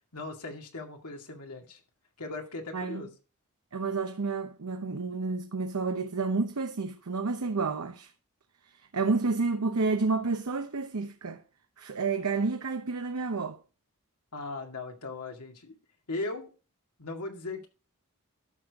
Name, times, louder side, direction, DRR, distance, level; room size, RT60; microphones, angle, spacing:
voice 1, 0.1-1.8 2.2-3.1 14.3-15.8 16.1-16.5 17.0-17.7, left 3 dB, 90° left, 2.1 m, -38 dB
voice 2, 3.7-8.1 8.9-11.4 11.8-13.6, right 4 dB, 90° right, 0.8 m, -30 dB
12.0 x 6.8 x 3.5 m
head